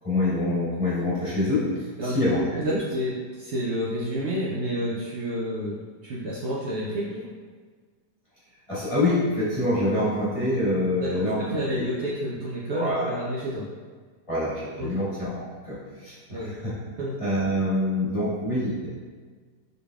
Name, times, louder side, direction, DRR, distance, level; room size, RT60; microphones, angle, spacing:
voice 1, 0.0-1.7 2.0-2.4 2.7-2.8 8.7-11.4 11.7-11.9 12.7-13.1 14.3-16.7 17.2-18.9, left 1 dB, 20° left, -11 dB, 1.4 m, -26 dB
voice 2, 2.0-5.8 6.0-7.2 11.0-13.7 14.8-15.0 16.3-16.5 17.0-17.1, equal, 85° right, -6 dB, 0.6 m, -30 dB
4.1 x 3.3 x 2.3 m, 1.5 s
omnidirectional pair, 1.8 m